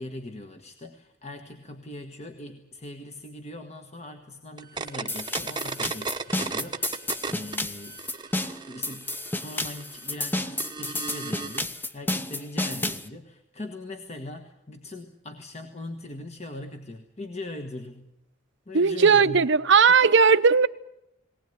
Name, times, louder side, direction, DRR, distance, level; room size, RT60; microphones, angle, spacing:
voice 1, 0.0-8.0 8.7-18.1 18.6-19.5 20.0-20.1, left 2 dB, 35° left, 5 dB, 1.5 m, -40 dB
sound 1, 4.6-7.6 7.9-11.6, right 4 dB, 25° right, 1.0 m, -35 dB
sound 2, 5.1-13.1, left 2 dB, 10° left, 0.8 m, -31 dB
voice 2, 18.7-20.7, right 5 dB, 65° right, 12 dB, 0.8 m, -18 dB
19.5 x 19.0 x 9.4 m, 0.82 s
head